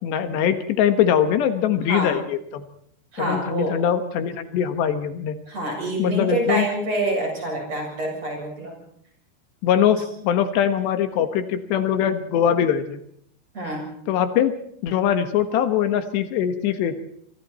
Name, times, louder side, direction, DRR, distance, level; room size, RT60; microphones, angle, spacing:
voice 1, 0.0-2.7 3.2-5.4 6.0-6.7 9.6-13.0 14.1-14.5 14.8-16.9, left 9 dB, 80° left, 9 dB, 3.5 m, -22 dB
voice 2, 3.1-3.8 5.5-8.8 13.5-13.9, right 1 dB, 35° right, 1 dB, 8.5 m, -26 dB
26.0 x 24.0 x 4.3 m, 0.67 s
omnidirectional pair, 5.0 m